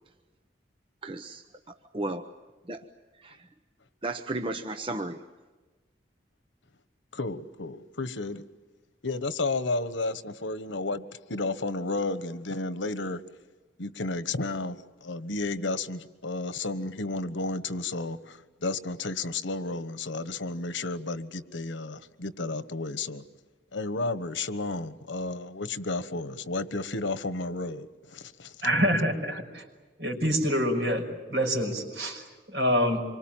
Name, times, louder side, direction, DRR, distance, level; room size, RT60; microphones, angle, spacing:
voice 1, 1.0-2.3 2.6-2.8 3.1-3.5 4.0-5.2, right 2 dB, 30° right, 0.9 m, -35 dB
voice 2, 7.1-8.5 9.0-13.2 13.8-23.2 23.7-28.6, left 3 dB, 90° left, 1.2 m, -32 dB
voice 3, 28.6-29.6 30.0-33.0, equal, 65° right, 5.8 m, -26 dB
26.5 x 24.0 x 9.0 m
head